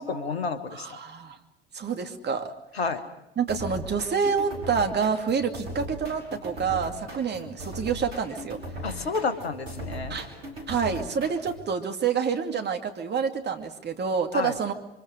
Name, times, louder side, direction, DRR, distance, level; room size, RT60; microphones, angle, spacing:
voice 1, 0.0-1.0 2.7-3.0 8.8-10.2 14.3-14.5, left 4 dB, 85° left, 10 dB, 1.7 m, -30 dB
voice 2, 0.7-1.4 1.7-2.5 3.4-8.6 10.1-10.3 10.7-14.7, right 6 dB, 35° right, 5 dB, 2.5 m, -27 dB
sound 1, 3.5-11.7, equal, 80° right, 5.5 m, -39 dB
28.0 x 24.5 x 5.0 m, 0.87 s
figure-of-eight pair, 65°, 30 cm